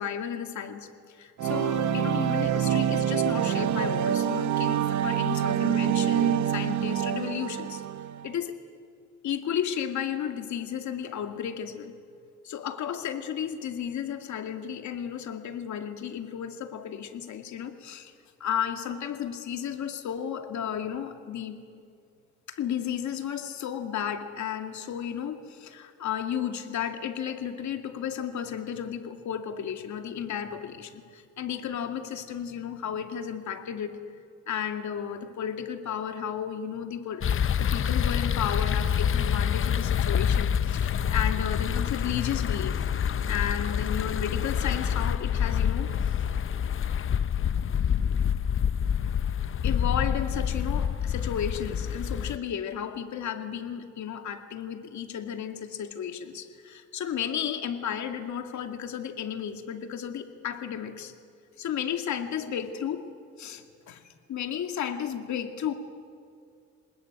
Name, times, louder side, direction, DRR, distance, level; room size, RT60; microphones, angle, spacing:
voice 1, 0.0-7.8 8.2-8.5 9.2-12.0 12.4-18.1 18.4-21.6 22.5-34.0 34.5-37.3 37.6-42.9 43.3-46.3 49.6-61.1 61.6-63.1 63.4-65.7, left 8 dB, 70° left, 6 dB, 2.3 m, -33 dB
sound 1, 1.4-8.3, right 10 dB, 70° right, 1.2 m, -26 dB
sound 2, 37.2-52.4, left 8 dB, 45° left, 0.8 m, -27 dB
29.0 x 20.0 x 9.1 m, 2.4 s
cardioid pair, 90°, 30 cm